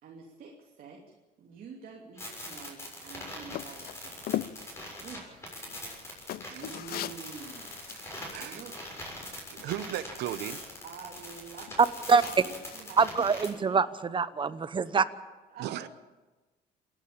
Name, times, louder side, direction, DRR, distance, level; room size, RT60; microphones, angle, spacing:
voice 1, 0.0-4.5 5.0-5.5 6.5-7.7 8.4-8.8 10.8-11.9 12.2-13.2 13.5-13.8 15.5-15.9, right 5 dB, 60° right, -1 dB, 2.9 m, -47 dB
sound 1, 2.2-13.5, left 1 dB, 15° left, 6.8 m, -42 dB
sound 2, 3.5-12.8, left 13 dB, 65° left, 0.7 m, -42 dB
voice 2, 7.9-8.6 9.5-10.6 15.6-15.9, right 13 dB, 80° right, 14 dB, 1.0 m, -36 dB
voice 3, 13.0-15.0, right 5 dB, 30° right, 15 dB, 0.9 m, -25 dB
28.0 x 11.0 x 8.8 m, 1.2 s
cardioid pair, 110°, 17 cm